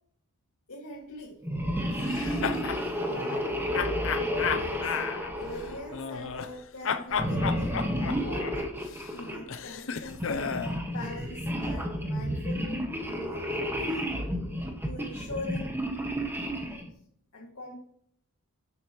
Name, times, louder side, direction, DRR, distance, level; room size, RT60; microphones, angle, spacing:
voice 1, 0.7-1.4 3.1-5.0 5.3-8.0 8.2-8.7 9.1-10.2 10.9-14.1 14.8-15.8 17.3-17.8, left 1 dB, 80° left, -4 dB, 2.2 m, -42 dB
sound 1, 1.4-6.3 7.1-9.4 10.1-16.9, equal, 10° right, 1.5 m, -31 dB
sound 2, 2.0-2.8 3.7-6.6 6.8-10.8, left 6 dB, 60° left, 0.7 m, -33 dB
12.5 x 8.2 x 3.1 m, 0.67 s
head